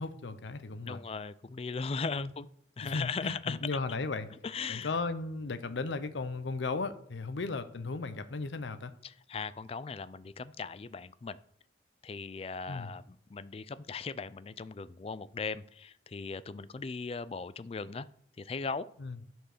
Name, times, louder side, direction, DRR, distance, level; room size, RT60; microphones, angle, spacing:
voice 1, 0.0-1.0 2.1-2.3 2.8-4.3 4.7-8.9 12.7-12.9 19.0-19.2, left 3 dB, 75° left, 0.7 m, -36 dB
voice 2, 0.9-2.5 2.8-3.6 4.4-4.9 9.3-11.4 12.0-13.0 13.3-18.1 18.4-18.9, left 4 dB, 30° left, 0.3 m, -38 dB
10.5 x 4.6 x 6.6 m
head